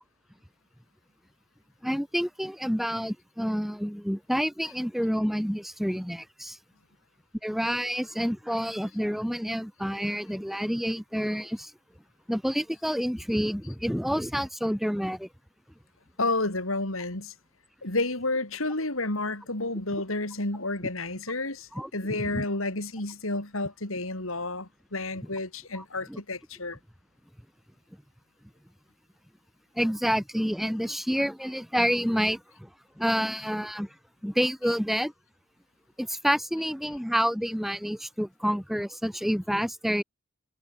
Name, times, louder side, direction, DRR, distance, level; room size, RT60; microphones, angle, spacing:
voice 1, 1.8-6.6 7.4-11.7 12.3-15.3 21.7-22.4 25.7-26.2 29.7-32.7 33.0-33.9 34.2-35.1 36.0-40.0, equal, ahead, 6.3 m, -28 dB
voice 2, 16.2-17.3 17.8-26.8, left 2 dB, 75° left, 5.2 m, -31 dB
head